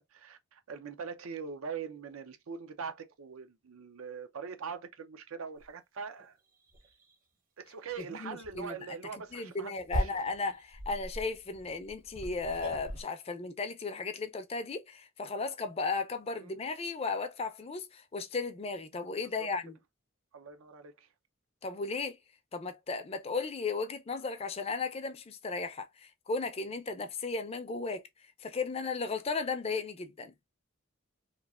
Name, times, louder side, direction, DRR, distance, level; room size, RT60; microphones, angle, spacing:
voice 1, 0.0-6.4 7.6-10.1 16.4-16.6 20.3-21.1, right 6 dB, 85° right, 0.5 m, -42 dB
sound 1, 5.6-5.7 6.2-6.3 6.7-7.1 7.9-8.1 8.4-8.6 9.3-13.0, equal, 40° right, 0.7 m, -39 dB
voice 2, 8.0-8.8 9.3-19.8 21.6-22.2 22.5-28.0 28.4-30.3, left 4 dB, 30° left, 0.4 m, -35 dB
3.0 x 2.3 x 2.3 m
head